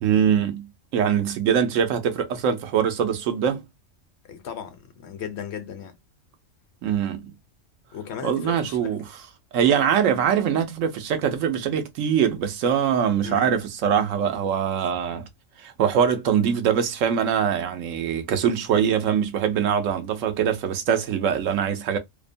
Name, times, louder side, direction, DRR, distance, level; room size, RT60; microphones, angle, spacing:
voice 1, 0.0-3.6 6.8-7.3 8.2-9.0 9.5-15.3 15.6-22.0, right 8 dB, 85° right, 1.0 m, -23 dB
voice 2, 4.3-5.9 7.9-9.0 13.2-13.5, left 8 dB, 65° left, 0.9 m, -36 dB
2.8 x 2.1 x 2.5 m
omnidirectional pair, 1.3 m